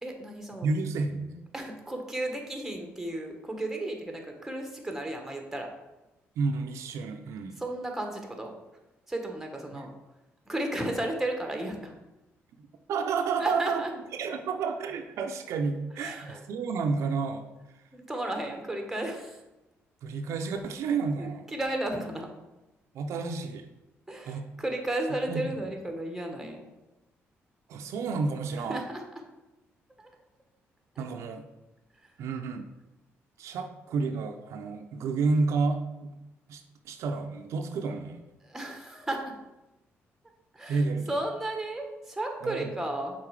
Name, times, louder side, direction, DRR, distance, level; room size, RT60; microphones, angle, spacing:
voice 1, 0.0-0.7 1.5-5.7 7.6-8.5 9.1-9.9 10.5-12.0 13.4-13.9 16.0-16.4 17.9-19.4 21.2-22.3 24.1-26.6 28.6-29.0 30.0-30.1 30.9-31.0 32.0-32.1 38.4-39.3 40.5-43.1, right 1 dB, 5° right, 3 dB, 1.2 m, -34 dB
voice 2, 0.6-1.5 6.4-7.6 9.7-9.9 12.9-13.8 14.2-17.5 17.7-17.8 20.0-21.4 22.9-23.7 24.2-24.4 25.3-25.7 27.7-28.8 31.0-31.4 32.2-32.7 33.4-36.1 36.5-38.2 40.7-41.1 42.4-42.7, right 4 dB, 80° right, 5 dB, 0.6 m, -30 dB
5.8 x 4.1 x 4.8 m, 1.0 s
cardioid pair, 110°, 5 cm